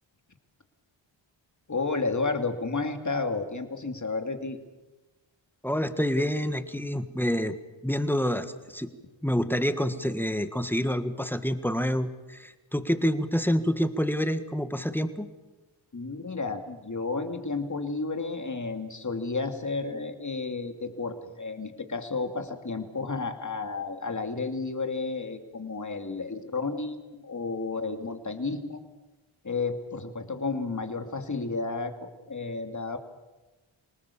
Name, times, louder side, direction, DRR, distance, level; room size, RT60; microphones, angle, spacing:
voice 1, 1.7-4.6 15.9-28.8 29.4-31.9 32.3-33.0, left 3 dB, 35° left, 6 dB, 2.6 m, -32 dB
voice 2, 5.6-7.6 7.8-8.9 9.2-15.3, equal, 5° left, 10 dB, 1.5 m, -27 dB
26.5 x 19.0 x 7.1 m, 1.2 s
wide cardioid pair, 75°, 49 cm